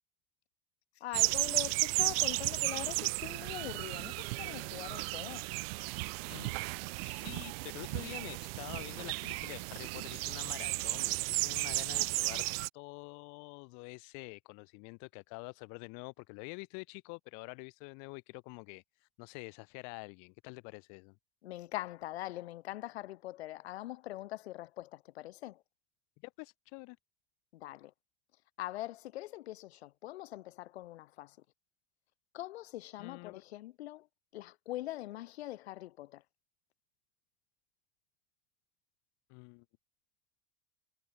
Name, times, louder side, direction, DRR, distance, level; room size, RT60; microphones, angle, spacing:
voice 1, 1.0-5.5 21.4-25.6 27.5-27.9 28.6-31.4 32.3-34.1 34.3-36.2, left 15 dB, 75° left, 3.8 m, -43 dB
sound 1, 1.1-12.7, right 27 dB, 65° right, 1.0 m, -34 dB
voice 2, 6.3-6.6 7.0-12.4 12.7-21.1 26.2-27.0 33.0-33.4 39.3-39.6, left 37 dB, 60° left, 1.6 m, -47 dB
hypercardioid pair, 85°, 32 cm